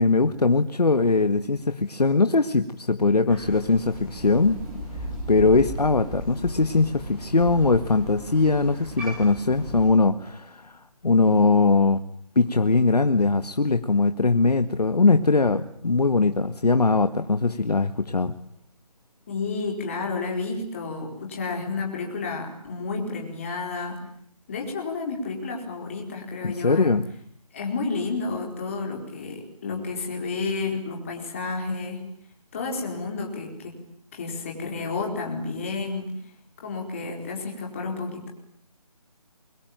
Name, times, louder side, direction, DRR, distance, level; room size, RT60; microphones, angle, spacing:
voice 1, 0.0-4.6 5.0-12.0 12.4-18.3 26.4-27.0, left 3 dB, 80° left, 10 dB, 1.9 m, -21 dB
Crow, 3.3-9.9, equal, 5° right, 6.9 m, -36 dB
voice 2, 19.3-24.0 24.5-26.9 27.5-32.0 32.5-33.7 34.1-36.1 36.6-38.3, left 4 dB, 20° left, 0 dB, 4.6 m, -31 dB
27.0 x 23.5 x 9.1 m, 0.64 s
figure-of-eight pair, 175°, 20 cm